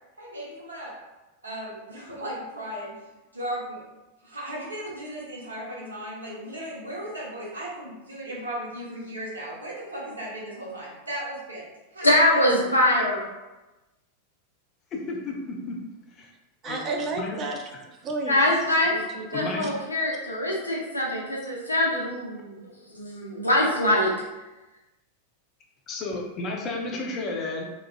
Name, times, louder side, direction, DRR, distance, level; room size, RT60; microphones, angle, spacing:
voice 1, 0.2-0.9 1.4-2.9 3.3-3.8 4.2-11.6 11.9-12.4, right 1 dB, 75° right, -5 dB, 0.8 m, -36 dB
voice 2, 12.0-13.2 18.3-18.9 19.3-22.6 22.9-24.1, left 1 dB, 85° left, -3 dB, 0.6 m, -23 dB
voice 3, 14.9-15.8 16.1-16.3 16.6-16.8 17.2-17.4 19.3-19.7 25.9-27.6, left 2 dB, 30° left, 0 dB, 0.5 m, -32 dB
voice 4, 16.6-17.7 18.0-18.4 18.9-19.7, right 3 dB, 30° right, 2 dB, 0.4 m, -32 dB
3.0 x 2.3 x 2.2 m, 1.1 s
figure-of-eight pair, 90°, 0 cm